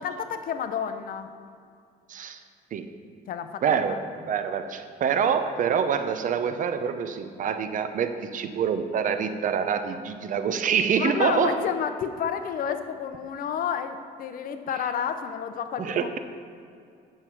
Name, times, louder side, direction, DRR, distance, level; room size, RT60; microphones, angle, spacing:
voice 1, 0.0-1.3 3.3-4.0 11.0-16.2, left 7 dB, 55° left, 9 dB, 0.8 m, -30 dB
voice 2, 2.1-2.4 2.7-2.9 3.6-4.0 4.3-11.6 15.8-16.2, right 7 dB, 50° right, 9 dB, 0.7 m, -26 dB
8.9 x 6.5 x 6.0 m, 2.4 s
cardioid pair, 110°, 17 cm